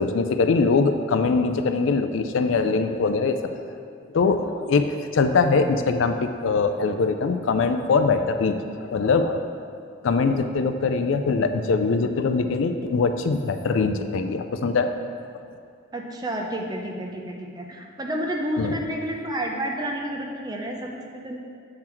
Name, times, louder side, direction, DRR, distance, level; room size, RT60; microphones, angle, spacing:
voice 1, 0.0-3.4 4.1-9.5 10.0-14.9 18.6-18.7, left 4 dB, 75° left, 8 dB, 0.4 m, -22 dB
voice 2, 15.9-21.4, right 1 dB, 20° right, 1 dB, 0.5 m, -30 dB
7.5 x 3.9 x 4.4 m, 2.3 s
head